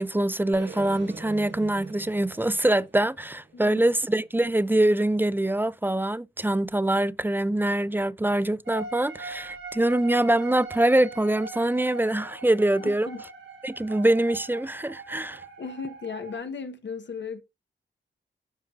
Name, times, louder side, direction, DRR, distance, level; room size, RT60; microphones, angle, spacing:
voice 1, 0.0-13.1 13.6-15.4, right 1 dB, 10° right, 0.4 m, -24 dB
sound 1, 0.5-4.6, right 4 dB, 65° right, 1.5 m, -44 dB
sound 2, 8.7-16.4, right 3 dB, 85° right, 3.3 m, -41 dB
voice 2, 12.8-13.2 15.6-17.4, left 5 dB, 65° left, 1.1 m, -36 dB
13.0 x 4.7 x 2.4 m
cardioid pair, 60°, 20 cm